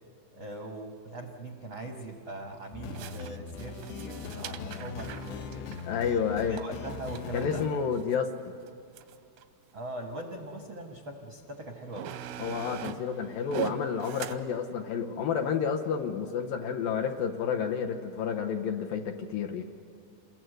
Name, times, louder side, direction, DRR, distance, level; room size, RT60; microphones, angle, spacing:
voice 1, 0.3-5.7 6.2-7.7 9.7-12.1, right 2 dB, 70° right, 2 dB, 1.1 m, -41 dB
sound 1, 1.7-1.8 2.9-8.2 8.7-8.8 9.0-9.4 10.2-10.3 11.2-11.3 11.7-14.4, right 10 dB, 90° right, 3.0 m, -41 dB
sound 2, 2.7-7.7, left 6 dB, 90° left, 3.0 m, -40 dB
voice 2, 5.8-6.6 7.3-8.3 12.4-19.6, left 7 dB, 70° left, 4 dB, 2.2 m, -30 dB
28.0 x 21.5 x 8.0 m, 2.3 s
omnidirectional pair, 4.8 m